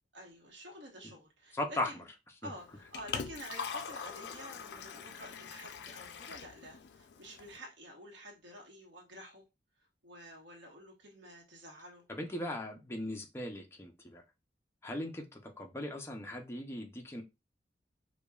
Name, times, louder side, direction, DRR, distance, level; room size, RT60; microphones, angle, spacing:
voice 1, 0.1-2.0 2.4-9.5 10.0-12.0, equal, 85° right, 1.1 m, -50 dB
voice 2, 1.5-2.0 2.4-2.5 12.1-14.2 14.8-17.2, left 1 dB, 15° left, 0.5 m, -38 dB
Liquid, 2.6-7.6, left 6 dB, 70° left, 0.4 m, -43 dB
5.0 x 2.3 x 2.3 m
head